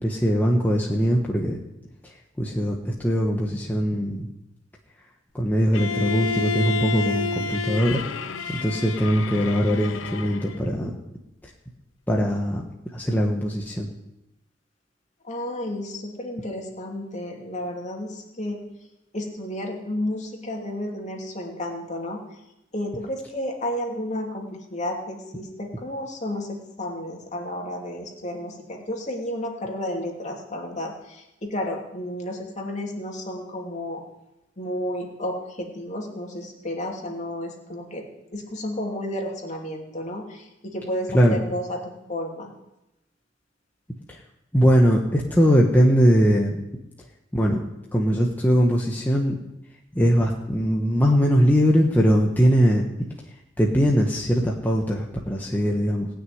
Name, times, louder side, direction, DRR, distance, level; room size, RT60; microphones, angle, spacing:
voice 1, 0.0-1.6 2.0-4.3 5.3-8.0 8.5-10.9 12.1-12.6 12.9-13.9 41.1-41.4 44.1-44.2 44.5-46.6 47.3-47.6 47.9-49.4 49.9-52.8 53.6-56.1, equal, 10° left, -1 dB, 1.2 m, -21 dB
Bowed string instrument, 5.7-10.7, left 5 dB, 85° left, 0.9 m, -30 dB
voice 2, 15.2-18.7 19.1-22.2 22.7-34.0 34.6-38.0 38.3-42.5, left 1 dB, 35° left, 0 dB, 2.7 m, -32 dB
19.0 x 6.4 x 9.4 m, 0.91 s
head